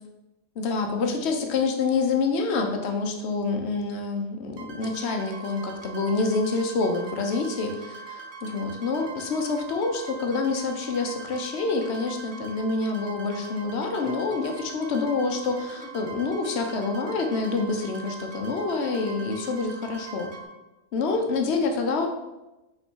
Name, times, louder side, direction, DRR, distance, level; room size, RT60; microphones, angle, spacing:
voice 1, 0.6-20.3 20.9-22.1, left 4 dB, 80° left, 4 dB, 1.1 m, -27 dB
sound 1, 4.6-20.4, right 5 dB, 75° right, 1.4 m, -42 dB
5.4 x 4.0 x 4.5 m, 1.0 s
omnidirectional pair, 1.1 m